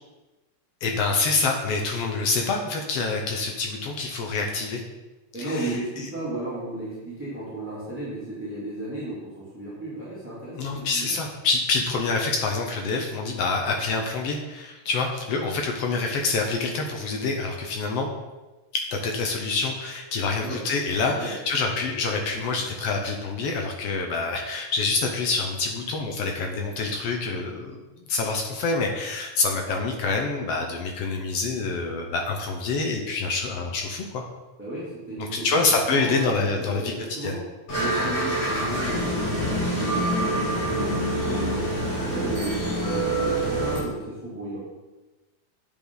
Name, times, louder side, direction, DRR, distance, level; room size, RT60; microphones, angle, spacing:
voice 1, 0.8-4.8 5.4-5.8 10.6-18.1 18.7-27.8 28.1-34.2 35.2-36.9 37.2-37.4, left 3 dB, 70° left, 2 dB, 1.5 m, -26 dB
voice 2, 5.3-11.1 20.3-20.6 21.0-21.3 34.6-37.4 37.8-41.6 42.0-44.6, right 1 dB, 5° right, -9 dB, 2.7 m, -34 dB
sound 1, 37.7-43.8, right 1 dB, 45° left, 3.5 m, -26 dB
9.2 x 8.2 x 4.0 m, 1.1 s
omnidirectional pair, 3.9 m